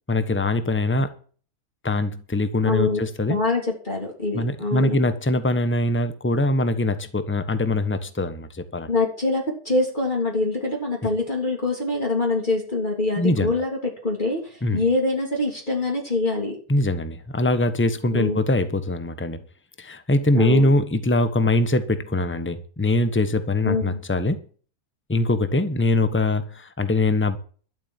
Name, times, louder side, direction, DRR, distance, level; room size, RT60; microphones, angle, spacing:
voice 1, 0.1-1.1 1.8-3.4 4.3-8.9 13.2-13.5 14.6-14.8 16.7-19.4 19.8-24.4 25.1-27.4, left 2 dB, 10° left, 11 dB, 1.1 m, -22 dB
voice 2, 2.7-5.0 8.9-13.7 14.0-16.6 18.1-18.4 20.3-20.7 23.7-24.0, left 2 dB, 30° left, -1 dB, 3.5 m, -24 dB
12.5 x 7.4 x 9.1 m, 0.42 s
omnidirectional pair, 1.6 m